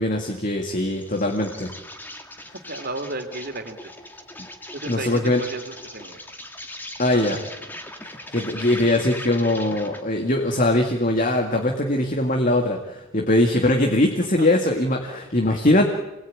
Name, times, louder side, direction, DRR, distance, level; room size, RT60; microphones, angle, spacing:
voice 1, 0.0-1.7 4.9-5.4 7.0-7.4 8.3-15.8, left 1 dB, 35° left, 2 dB, 2.1 m, -21 dB
Insect, 0.7-10.1, left 1 dB, 10° left, 2.0 m, -40 dB
voice 2, 2.7-3.9 4.7-6.2 7.1-7.4 15.1-15.2, right 2 dB, 45° right, 7 dB, 3.0 m, -33 dB
28.0 x 20.0 x 8.9 m, 1.0 s
head